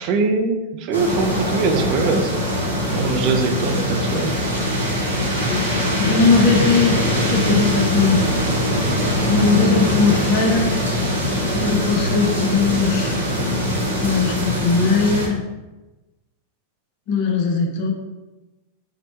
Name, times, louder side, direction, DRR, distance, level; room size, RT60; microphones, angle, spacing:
voice 1, 0.0-2.3 2.9-4.3, right 4 dB, 40° right, 4 dB, 0.4 m, -22 dB
sound 1, 0.9-15.3, equal, 80° right, 0.9 m, -22 dB
voice 2, 6.0-8.2 9.2-10.7 11.5-13.2 14.0-15.4 17.1-17.9, left 4 dB, 45° left, 2 dB, 0.7 m, -19 dB
4.0 x 2.1 x 4.3 m, 1.1 s
figure-of-eight pair, 90°, 0 cm